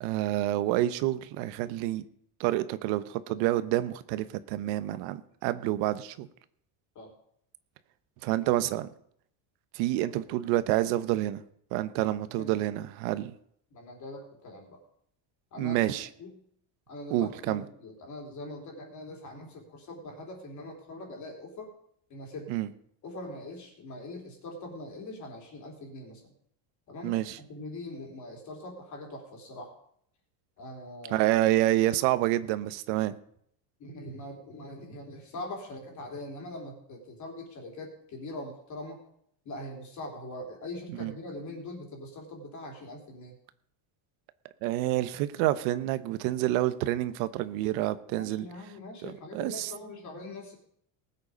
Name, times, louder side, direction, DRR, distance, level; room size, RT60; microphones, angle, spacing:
voice 1, 0.0-2.0 2.4-6.3 8.2-8.9 9.7-11.4 11.7-13.3 15.6-16.1 17.1-17.6 22.5-22.7 27.0-27.4 31.1-33.2 40.9-41.1 44.6-48.5 49.0-49.7, right 15 dB, 90° right, 13 dB, 1.1 m, -28 dB
voice 2, 13.7-14.8 15.5-16.4 16.9-21.7 22.1-22.6 23.0-26.3 26.9-29.7 30.6-31.3 33.8-39.0 39.5-43.4 48.1-50.6, left 1 dB, 35° left, 1 dB, 3.6 m, -42 dB
19.5 x 8.1 x 5.1 m, 0.67 s
cardioid pair, 170°, 50 cm